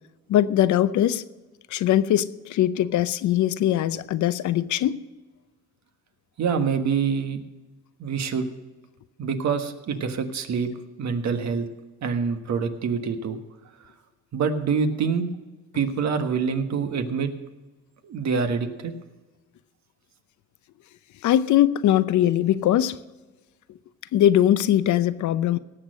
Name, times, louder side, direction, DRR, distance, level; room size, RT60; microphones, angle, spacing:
voice 1, 0.3-1.2 1.7-5.0 21.2-23.0 24.1-25.6, left 12 dB, 75° left, 0.7 m, -21 dB
voice 2, 6.4-7.4 8.0-8.5 9.2-10.7 11.0-11.7 12.0-13.4 14.3-15.3 15.7-17.3 18.0-18.9, right 5 dB, 65° right, 1.5 m, -25 dB
17.5 x 6.7 x 6.3 m
cardioid pair, 90°, 30 cm